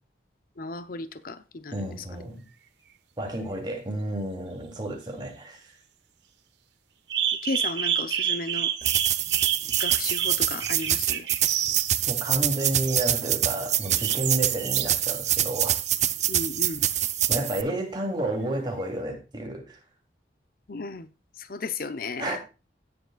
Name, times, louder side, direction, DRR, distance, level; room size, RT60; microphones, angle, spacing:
voice 1, 0.6-1.9 7.4-8.7 9.8-11.3 16.3-16.9 20.7-21.1 21.4-22.4, left 3 dB, 55° left, 0.7 m, -34 dB
voice 2, 1.7-2.4 3.2-5.6 12.1-15.7 17.3-19.8 22.2-22.4, right 1 dB, 25° right, 2.8 m, -31 dB
sound 1, 1.7-1.8 7.1-11.9 12.6-13.1 13.8-14.9 15.6-15.7, right 9 dB, 80° right, 1.2 m, -29 dB
sound 2, 8.8-17.6, right 11 dB, 40° right, 0.6 m, -25 dB
17.0 x 7.0 x 2.4 m
head